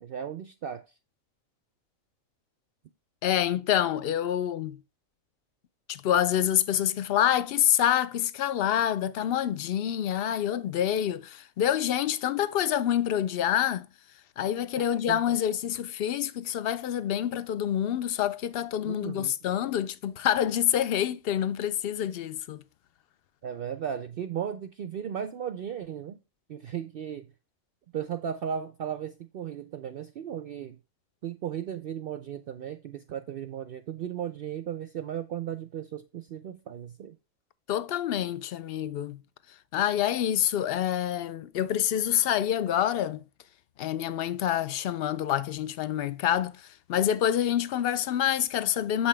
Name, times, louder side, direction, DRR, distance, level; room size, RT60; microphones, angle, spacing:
voice 1, 0.0-0.8 14.8-15.4 18.8-19.3 23.4-26.2 26.5-27.3 27.9-30.8 31.2-37.1, right 9 dB, 65° right, 0.5 m, -36 dB
voice 2, 3.2-4.8 5.9-13.9 14.4-22.6 37.7-39.2 39.7-43.2 43.8-46.6 46.9-49.1, left 10 dB, 65° left, 0.6 m, -27 dB
7.8 x 5.5 x 3.3 m
omnidirectional pair, 1.4 m